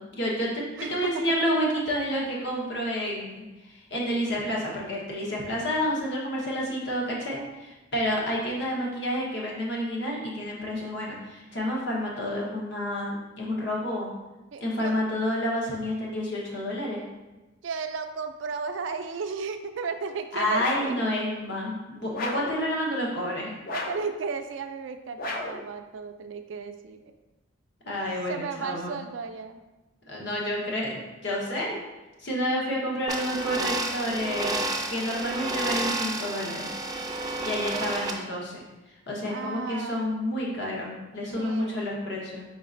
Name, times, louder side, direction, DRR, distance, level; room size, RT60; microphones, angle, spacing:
voice 1, 0.0-3.4 3.7-14.1 14.6-17.0 20.3-23.5 27.9-28.9 30.1-31.8 32.2-34.6 34.9-36.7 37.4-38.6 39.1-42.4, equal, 65° left, -3 dB, 1.1 m, -29 dB
voice 2, 0.8-1.2 14.5-15.0 17.6-21.0 23.7-27.1 28.3-29.6 39.3-40.2 41.4-42.0, right 5 dB, 80° right, 8 dB, 0.4 m, -34 dB
sound 1, 20.6-21.0 22.1-22.6 23.7-24.1 25.2-25.7, left 2 dB, 50° left, 0.5 m, -33 dB
sound 2, 33.1-38.1, right 2 dB, 20° right, 0.4 m, -30 dB
4.9 x 3.9 x 2.5 m, 1.1 s
head